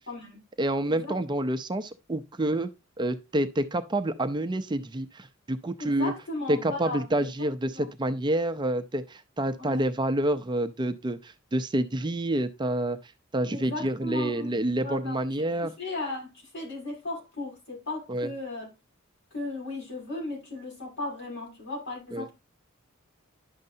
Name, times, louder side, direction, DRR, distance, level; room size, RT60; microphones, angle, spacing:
voice 1, 0.1-0.4 0.8-1.1 5.8-7.9 9.6-9.9 13.5-14.5 14.8-15.4 15.8-18.7 19.3-22.3, left 2 dB, 60° left, 6.2 m, -36 dB
voice 2, 0.6-2.7 3.0-6.1 6.5-13.0 13.3-15.7 18.1-18.3 22.1-22.3, right 1 dB, 20° right, 0.5 m, -28 dB
10.5 x 6.5 x 2.7 m
head